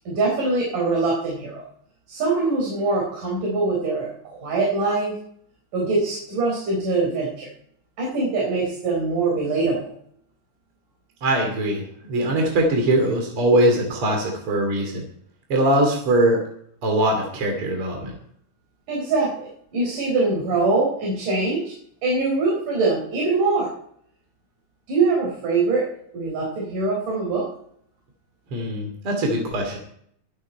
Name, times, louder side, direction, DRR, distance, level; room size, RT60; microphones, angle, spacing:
voice 1, 0.1-1.6 2.1-5.1 5.7-7.5 8.0-9.9 18.9-21.7 22.0-23.7 24.9-25.9 26.1-27.5, right 3 dB, 90° right, -3 dB, 5.7 m, -23 dB
voice 2, 11.2-15.0 15.5-16.4 16.8-18.1 28.5-29.8, right 1 dB, 45° right, 1 dB, 3.6 m, -21 dB
23.0 x 8.9 x 4.5 m, 0.67 s
omnidirectional pair, 3.5 m